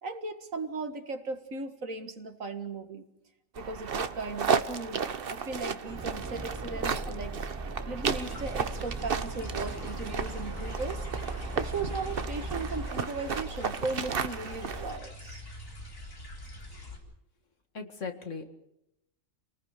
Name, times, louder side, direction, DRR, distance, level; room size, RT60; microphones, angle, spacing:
voice 1, 0.0-3.1 3.6-7.4 7.9-11.1 11.5-15.5, right 3 dB, 80° right, 7 dB, 2.3 m, -37 dB
sound 1, 3.6-15.0, right 6 dB, 50° right, 1.1 m, -34 dB
sound 2, 5.9-12.9, right 1 dB, 15° right, 0.8 m, -39 dB
sound 3, 8.2-17.0, left 1 dB, 85° left, 4.5 m, -44 dB
voice 2, 17.7-18.5, left 4 dB, 65° left, 6 dB, 2.4 m, -38 dB
28.0 x 19.0 x 6.7 m, 0.83 s
omnidirectional pair, 1.4 m